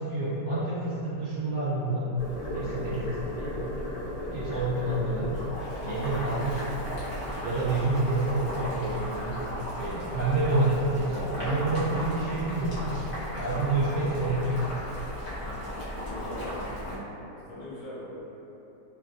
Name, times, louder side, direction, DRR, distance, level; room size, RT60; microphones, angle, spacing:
voice 1, 0.0-2.1 2.5-3.8 4.3-5.3 5.8-6.7 7.4-9.4 9.8-13.0 13.4-14.5, right 2 dB, 70° right, -9 dB, 1.0 m, -28 dB
Boiling, 2.2-16.9, equal, 55° left, 0.6 m, -35 dB
voice 2, 15.6-18.2, left 1 dB, 85° left, -8 dB, 1.2 m, -41 dB
2.9 x 2.5 x 2.3 m, 2.9 s
omnidirectional pair, 1.8 m